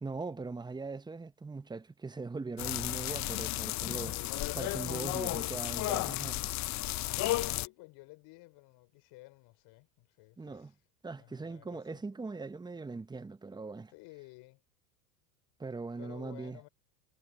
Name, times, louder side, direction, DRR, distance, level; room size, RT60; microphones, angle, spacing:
voice 1, 0.0-4.1 4.5-6.5 10.4-10.7 11.0-13.9 15.6-16.7, right 3 dB, 10° right, 1.1 m, -40 dB
sound 1, 2.6-7.7, left 17 dB, 35° left, 0.7 m, -33 dB
voice 2, 3.7-4.4 7.5-10.8 11.2-12.0 13.9-14.6 16.0-16.7, left 23 dB, 55° left, 5.6 m, -54 dB
hypercardioid pair, 95°, 47 cm